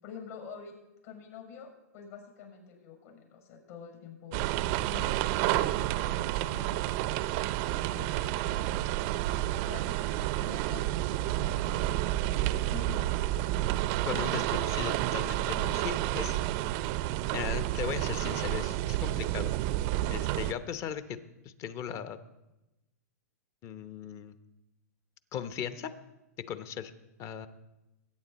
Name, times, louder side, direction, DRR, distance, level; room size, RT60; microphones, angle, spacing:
voice 1, 0.0-0.8 1.0-6.8 7.9-9.0 9.6-13.1, left 7 dB, 60° left, 1 dB, 6.5 m, -47 dB
sound 1, 4.3-20.5, right 15 dB, 45° right, 0.5 m, -30 dB
voice 2, 14.0-16.4 17.3-19.5 20.1-21.2 21.4-22.2 23.6-24.4 25.3-25.9 26.5-26.9 27.2-27.5, left 8 dB, 35° left, 12 dB, 0.9 m, -37 dB
21.5 x 9.5 x 4.2 m, 0.97 s
hypercardioid pair, 125°, 9 cm